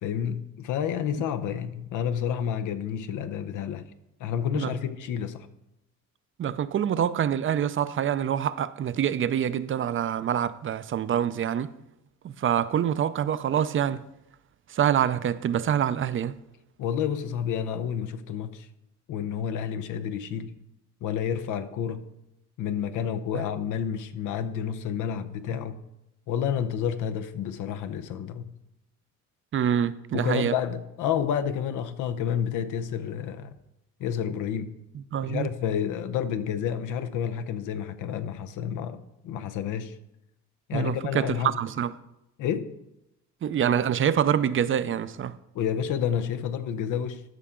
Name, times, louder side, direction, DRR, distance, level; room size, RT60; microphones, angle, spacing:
voice 1, 0.0-3.9 4.2-5.5 16.8-18.7 19.1-20.5 21.0-22.1 22.6-25.8 26.3-28.5 30.1-33.5 34.0-34.7 35.2-40.0 40.7-41.5 42.4-42.7 45.5-47.2, left 8 dB, 85° left, 0.7 m, -30 dB
voice 2, 6.4-11.7 12.2-14.0 14.7-16.4 29.5-30.6 35.1-35.5 40.7-41.9 43.4-45.4, right 9 dB, 45° right, 0.5 m, -26 dB
12.5 x 5.7 x 3.8 m
cardioid pair, 90°, 30 cm